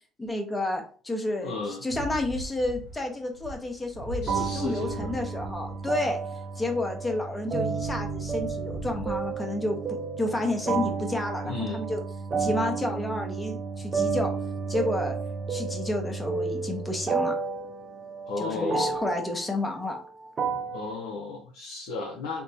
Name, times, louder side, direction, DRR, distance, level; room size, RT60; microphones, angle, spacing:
voice 1, 0.2-6.2 6.6-12.0 12.4-14.3 14.7-15.2 15.5-17.4 18.4-20.0, left 2 dB, 15° left, 4 dB, 0.8 m, -30 dB
voice 2, 1.4-1.8 4.2-5.1 11.4-11.9 18.3-19.0 20.7-22.4, left 3 dB, 70° left, -2 dB, 0.5 m, -34 dB
sound 1, 1.9-5.8 7.6-9.3, right 2 dB, 80° right, 0.9 m, -40 dB
sound 2, 4.3-20.9, right 5 dB, 40° right, 0.5 m, -31 dB
3.4 x 2.0 x 2.7 m, 0.42 s
hypercardioid pair, 60°, 0 cm